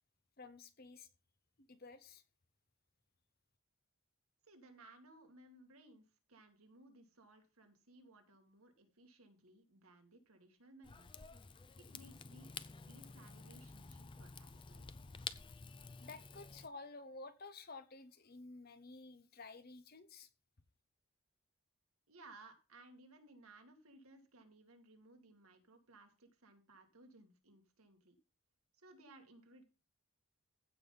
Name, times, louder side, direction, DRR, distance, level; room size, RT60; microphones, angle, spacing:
voice 1, 0.4-1.1 1.6-2.2 16.0-20.3, left 3 dB, 45° left, 1.0 m, -52 dB
voice 2, 4.4-11.3 11.8-14.9 22.1-28.2 28.7-29.6, right 2 dB, 75° right, 2.2 m, -61 dB
Rain / Fire, 10.8-16.7, left 5 dB, 20° left, 0.4 m, -51 dB
15.5 x 5.3 x 4.0 m
head